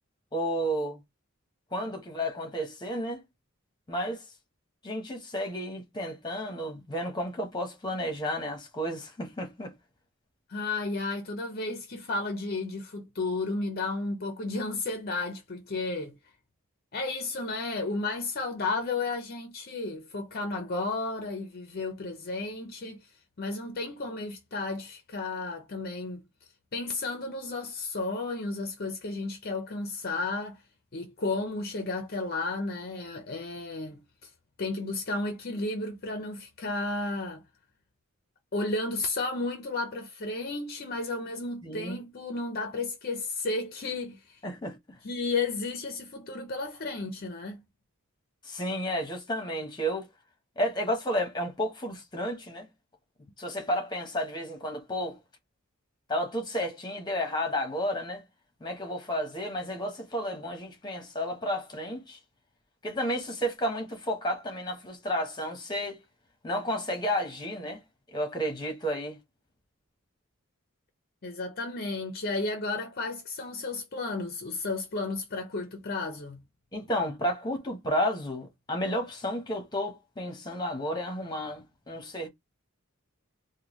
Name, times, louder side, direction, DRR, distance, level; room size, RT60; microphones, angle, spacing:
voice 1, 0.3-1.0 1.7-3.2 3.9-4.2 4.8-9.7 41.6-42.0 44.4-44.8 48.4-50.1 50.6-52.7 53.4-55.2 56.1-58.2 58.6-62.2 62.8-66.0 66.4-67.8 68.1-69.2 76.7-82.3, equal, 20° left, 1.0 m, -32 dB
voice 2, 10.5-16.1 16.9-23.1 23.4-26.2 26.7-30.6 30.9-34.3 34.6-37.4 38.5-44.4 45.0-47.6 71.2-76.4, left 3 dB, 45° left, 0.6 m, -33 dB
3.5 x 2.2 x 3.0 m
head